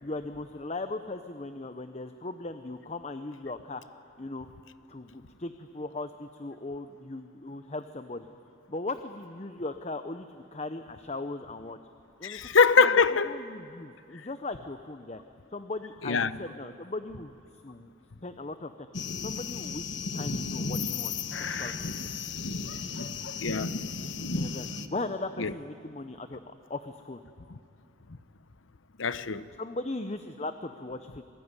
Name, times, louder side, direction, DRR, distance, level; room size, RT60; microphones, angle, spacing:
voice 1, 0.0-3.8 4.2-4.5 4.9-8.3 8.7-11.8 12.2-12.4 12.8-15.2 15.5-17.3 17.6-17.9 18.2-18.9 19.2-19.9 20.1-21.1 21.5-21.9 24.3-27.2 29.6-31.2, left 2 dB, 35° left, 0.8 m, -38 dB
voice 2, 12.2-13.3 16.0-16.4 23.4-23.8 25.4-25.5 27.5-27.6 29.0-29.5, left 5 dB, 90° left, 0.9 m, -23 dB
sound 1, 18.9-24.9, left 4 dB, 70° left, 1.3 m, -34 dB
28.0 x 20.5 x 9.8 m
head